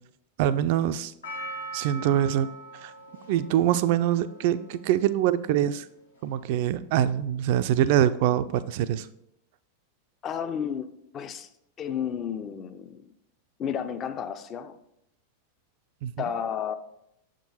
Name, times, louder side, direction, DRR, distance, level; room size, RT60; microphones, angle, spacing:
voice 1, 0.4-1.1 1.7-2.5 2.8-2.9 3.3-5.9 6.2-9.1 16.0-16.1, right 11 dB, 50° right, 0.3 m, -24 dB
Percussion, 1.2-5.6 6.2-6.3, right 2 dB, 75° left, 1.0 m, -41 dB
voice 2, 10.2-11.5 11.8-13.1 13.6-14.8 16.2-16.7, left 8 dB, 30° left, 0.5 m, -32 dB
7.1 x 3.7 x 4.2 m
figure-of-eight pair, 90°, 0 cm